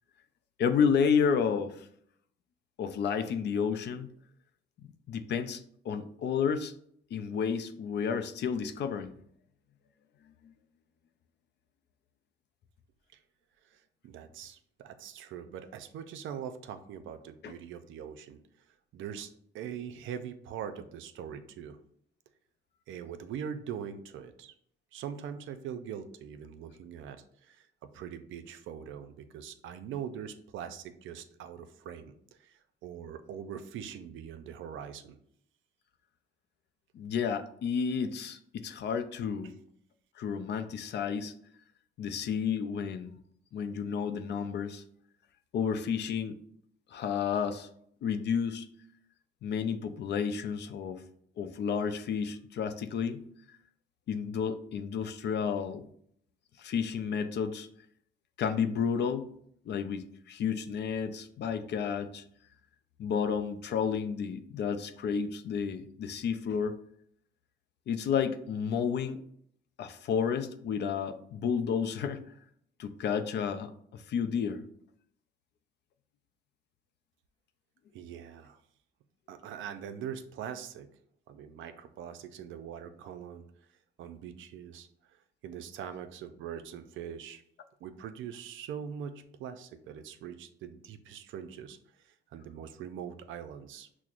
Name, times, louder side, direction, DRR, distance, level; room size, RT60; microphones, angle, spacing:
voice 1, 0.6-1.9 2.8-4.1 4.8-6.7 7.1-9.2 10.4-10.5 17.4-17.5 36.9-39.5 40.2-41.3 42.0-43.2 43.5-44.8 45.5-46.4 46.9-47.7 48.0-48.7 49.4-51.0 51.4-53.2 54.1-55.8 56.6-57.7 58.4-59.2 59.7-62.2 63.0-66.8 67.9-69.2 69.8-72.2 72.8-74.6, left 7 dB, 60° left, 9 dB, 0.5 m, -31 dB
voice 2, 13.6-18.4 18.9-21.8 22.9-24.5 24.9-35.2 39.4-39.5 77.9-78.6 79.3-80.9 81.3-83.4 84.0-87.4 87.8-91.8 92.0-93.9, right 8 dB, 80° right, 9 dB, 0.4 m, -42 dB
5.8 x 2.1 x 2.4 m, 0.67 s
cardioid pair, 90°, 20 cm